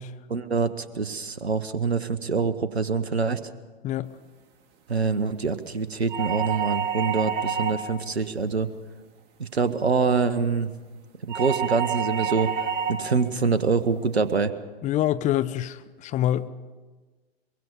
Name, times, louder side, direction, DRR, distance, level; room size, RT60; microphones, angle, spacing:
voice 1, 0.3-3.4 4.9-8.7 9.4-10.7 11.3-14.5, right 4 dB, 85° right, 1.2 m, -25 dB
sound 1, 6.1-8.0 11.3-13.1, right 8 dB, 35° right, 2.1 m, -28 dB
voice 2, 14.8-16.5, left 12 dB, 25° left, 0.7 m, -26 dB
23.0 x 22.5 x 5.3 m
figure-of-eight pair, 105°, 31 cm